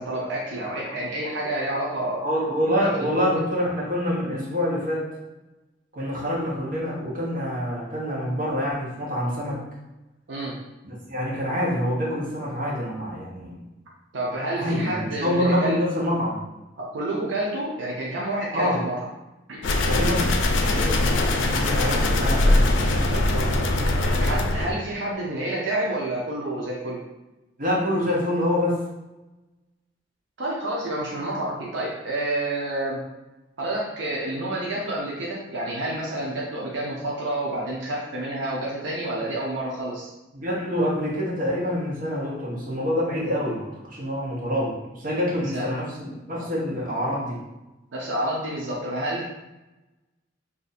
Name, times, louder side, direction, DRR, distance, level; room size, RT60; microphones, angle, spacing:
voice 1, 0.0-2.2 2.8-3.4 10.3-10.6 14.1-15.8 16.8-19.1 19.5-19.6 24.0-27.0 30.4-33.0 33.6-40.1 45.2-45.7 46.3-46.5 47.9-49.4, right 1 dB, 80° right, -4 dB, 0.7 m, -29 dB
voice 2, 2.2-5.1 5.9-9.6 10.8-13.6 14.6-16.4 18.5-18.8 19.9-20.4 20.6-23.6 27.6-28.8 40.3-47.4, equal, 50° right, -5 dB, 1.0 m, -26 dB
sound 1, 19.6-24.7, left 1 dB, 80° left, 0.4 m, -21 dB
2.6 x 2.5 x 4.1 m, 1.0 s
head